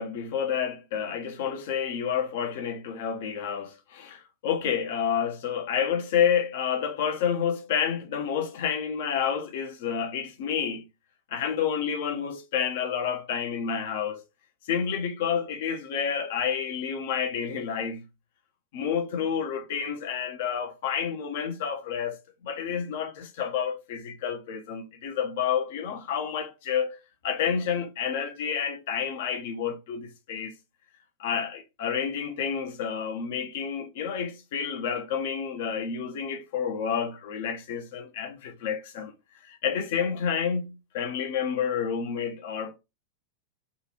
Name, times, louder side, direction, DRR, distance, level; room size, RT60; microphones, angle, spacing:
voice 1, 0.0-10.9 11.3-14.2 14.7-18.0 18.7-30.5 31.2-39.1 39.4-42.7, left 7 dB, 55° left, 0.7 m, -29 dB
3.7 x 2.4 x 2.9 m
figure-of-eight pair, 90°, 0 cm